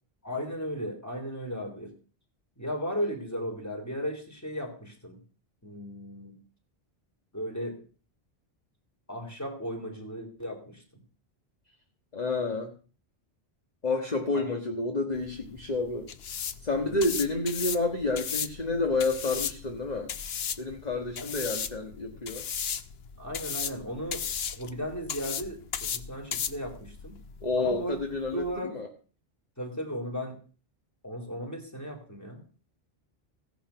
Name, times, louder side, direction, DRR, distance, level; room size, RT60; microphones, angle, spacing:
voice 1, 0.2-1.9 2.6-5.2 5.6-6.4 7.3-7.8 9.1-10.8 14.3-14.4 16.8-17.1 21.2-21.3 23.2-24.3 24.5-27.2 27.5-28.0 28.3-28.7 29.6-30.4 31.0-32.4, equal, 15° left, 3 dB, 3.4 m, -35 dB
voice 2, 12.1-12.7 13.8-16.1 16.6-20.1 20.6-22.4 27.4-28.9, left 3 dB, 40° left, 3 dB, 1.6 m, -29 dB
sound 1, 15.1-28.6, left 7 dB, 75° left, 1.1 m, -36 dB
16.5 x 10.0 x 5.8 m, 0.38 s
omnidirectional pair, 1.1 m